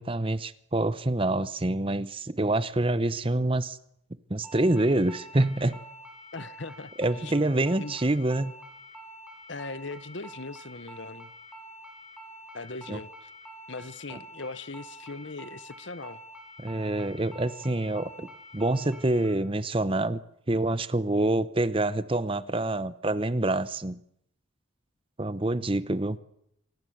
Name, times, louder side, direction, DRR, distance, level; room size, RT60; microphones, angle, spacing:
voice 1, 0.0-3.8 4.3-5.8 7.0-8.5 12.9-13.0 16.6-18.3 18.5-20.2 20.5-24.0 25.2-26.2, right 2 dB, 25° right, 0.9 m, -26 dB
sound 1, 4.4-19.3, equal, 5° right, 5.8 m, -47 dB
voice 2, 6.3-6.9 7.2-7.3 7.8-7.9 9.5-11.3 12.5-13.3 13.7-16.2, left 3 dB, 60° left, 1.0 m, -39 dB
26.5 x 19.0 x 8.0 m
head